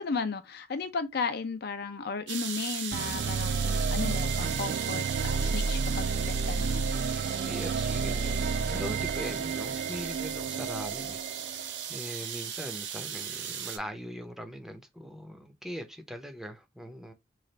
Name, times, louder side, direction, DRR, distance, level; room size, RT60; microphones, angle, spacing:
voice 1, 0.0-6.9, left 4 dB, 60° left, 0.5 m, -35 dB
sound 1, 2.3-13.8, right 8 dB, 85° right, 0.7 m, -37 dB
sound 2, 2.9-12.0, right 4 dB, 50° right, 0.3 m, -31 dB
voice 2, 7.4-11.2 11.5-17.1, equal, ahead, 0.6 m, -41 dB
3.2 x 2.4 x 3.9 m
head